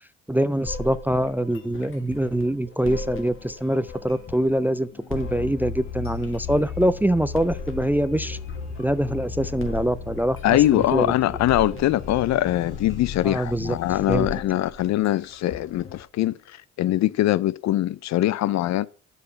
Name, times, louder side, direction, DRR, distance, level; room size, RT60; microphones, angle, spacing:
voice 1, 0.3-8.4 8.8-11.1 13.2-13.8 14.1-14.3, right 1 dB, 5° right, 0.4 m, -24 dB
sound 1, 0.6-16.0, left 2 dB, 40° left, 1.9 m, -39 dB
sound 2, 5.2-14.3, left 6 dB, 80° left, 2.6 m, -36 dB
voice 2, 10.4-16.4 16.8-18.9, left 14 dB, 55° left, 0.5 m, -22 dB
8.1 x 5.7 x 5.7 m
supercardioid pair, 65°, 33 cm